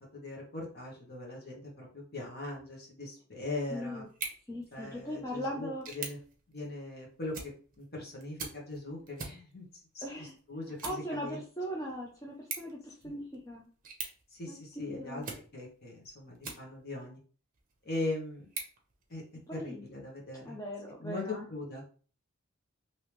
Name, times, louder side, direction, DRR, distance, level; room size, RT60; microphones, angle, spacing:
voice 1, 0.0-4.0 4.7-6.2 6.5-9.6 9.9-11.4 13.0-13.1 14.3-15.2 15.5-17.2 17.8-18.5 19.1-19.2 19.5-20.6 21.0-21.2 21.5-21.8, left 2 dB, 45° left, -1 dB, 1.2 m, -40 dB
voice 2, 3.7-4.1 4.5-5.9 10.0-10.3 10.8-13.7 14.5-15.3 19.5-19.8 20.4-21.5, equal, 15° left, -2 dB, 0.5 m, -39 dB
sound 1, 4.0-17.0 17.5-19.6, right 5 dB, 40° right, 0.8 m, -47 dB
3.3 x 2.9 x 3.0 m, 0.41 s
head